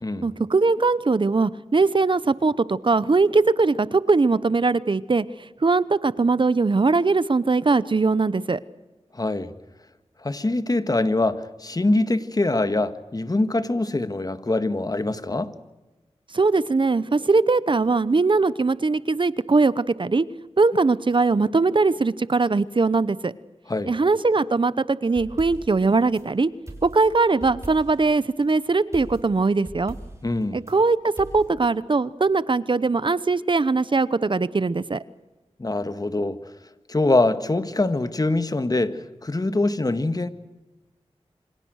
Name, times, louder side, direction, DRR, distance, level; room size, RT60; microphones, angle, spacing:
voice 1, 0.2-5.2 5.6-8.6 16.3-20.2 20.6-23.3 23.9-26.5 26.8-29.9 30.5-35.0, right 3 dB, 50° right, 17 dB, 0.9 m, -21 dB
voice 2, 9.1-9.5 10.2-15.5 23.7-23.9 30.2-30.6 35.6-36.4 36.9-40.3, left 2 dB, 35° left, 11 dB, 1.8 m, -24 dB
sound 1, 25.1-26.3 26.7-28.1 28.9-30.8 31.2-31.5, right 1 dB, 25° right, 5.9 m, -41 dB
28.0 x 25.0 x 6.5 m, 1.1 s
cardioid pair, 55°, 11 cm